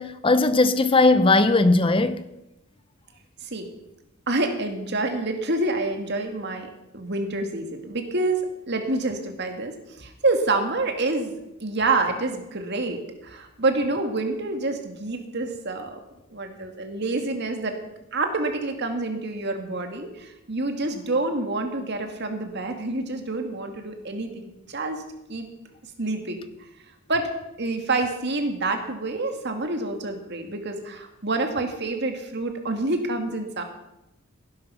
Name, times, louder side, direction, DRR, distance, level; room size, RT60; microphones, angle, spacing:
voice 1, 0.0-2.2, left 2 dB, 25° left, 0.6 m, -18 dB
voice 2, 4.3-16.0 16.3-17.7 18.1-25.0 25.3-25.5 26.0-26.4 27.1-27.3 27.6-33.6, right 2 dB, 50° right, 2.2 m, -27 dB
16.5 x 11.0 x 5.7 m
head